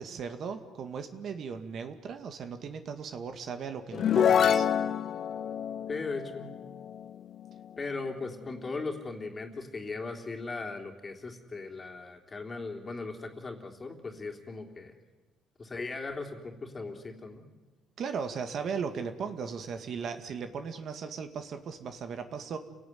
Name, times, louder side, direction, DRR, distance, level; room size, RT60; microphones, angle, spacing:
voice 1, 0.0-4.7 18.0-22.6, right 6 dB, 55° right, 8 dB, 2.1 m, -37 dB
sound 1, 3.9-7.5, left 8 dB, 50° left, 0.9 m, -27 dB
voice 2, 5.9-6.5 7.8-14.9 15.6-17.4, left 3 dB, 25° left, 3 dB, 3.5 m, -38 dB
29.5 x 18.0 x 9.4 m, 1.2 s
cardioid pair, 120°, 0 cm